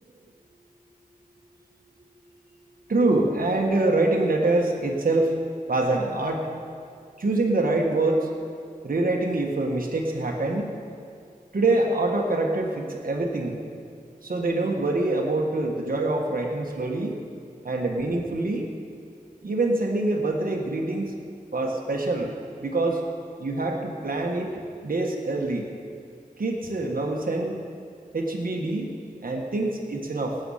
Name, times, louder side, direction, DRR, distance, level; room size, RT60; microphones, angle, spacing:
voice 1, 2.9-5.3 5.7-6.5 7.2-8.3 8.8-10.8 11.5-13.6 14.2-17.2 17.6-18.7 19.4-21.1 21.5-22.3 22.6-23.0 23.4-25.7 26.4-27.5 28.1-28.9 29.2-30.4, right 2 dB, 70° right, 0 dB, 1.5 m, -25 dB
18.0 x 7.8 x 5.7 m, 2.3 s
cardioid pair, 40°, 15 cm